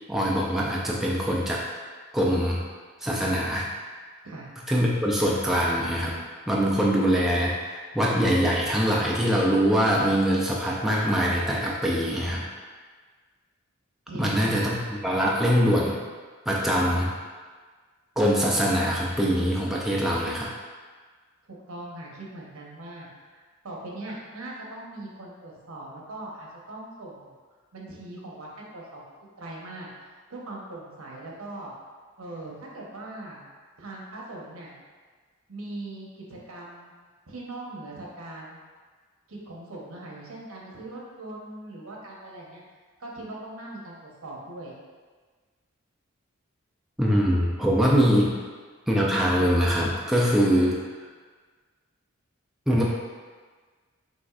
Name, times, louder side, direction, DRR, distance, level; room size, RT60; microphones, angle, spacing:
voice 1, 0.1-1.6 2.1-2.6 3.0-3.7 4.7-6.2 6.5-12.5 14.1-14.8 15.0-16.0 16.5-17.1 18.2-20.5 47.0-48.4 48.9-50.8 52.7-52.8, equal, ahead, -4 dB, 0.4 m, -23 dB
voice 2, 14.1-14.6 21.4-27.3 27.7-29.0 29.4-29.9 30.3-31.7 32.2-33.4 33.8-34.7 35.5-36.9 37.3-38.6 39.3-42.6 43.0-44.8 50.5-50.6, right 2 dB, 80° right, -3 dB, 1.0 m, -40 dB
5.9 x 3.1 x 2.4 m, 1.5 s
head